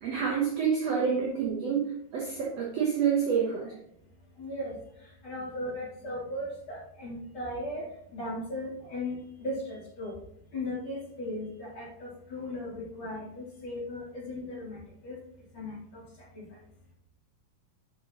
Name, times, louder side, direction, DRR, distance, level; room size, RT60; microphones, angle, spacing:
voice 1, 0.0-3.7, right 7 dB, 85° right, -2 dB, 1.4 m, -28 dB
voice 2, 4.4-4.8 5.2-7.9 8.1-10.2 10.5-15.2 15.5-16.0 16.3-16.4, left 1 dB, 35° left, -7 dB, 3.7 m, -37 dB
8.7 x 6.5 x 3.0 m, 0.75 s
omnidirectional pair, 4.5 m